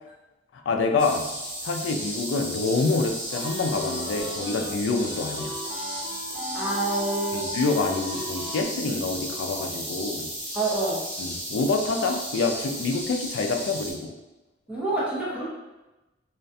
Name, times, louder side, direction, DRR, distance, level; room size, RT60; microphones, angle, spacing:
voice 1, 0.5-1.3 1.6-5.6 7.3-10.3 11.2-14.1, left 3 dB, 80° left, 4 dB, 0.3 m, -26 dB
sound 1, 1.0-13.9, equal, 20° right, 1.1 m, -35 dB
sound 2, 3.3-4.7 5.0-8.6, equal, 60° left, 1.0 m, -36 dB
voice 2, 6.5-7.5 10.5-11.0 14.7-15.5, right 2 dB, 5° right, -8 dB, 0.6 m, -27 dB
2.4 x 2.2 x 2.5 m, 1.0 s
head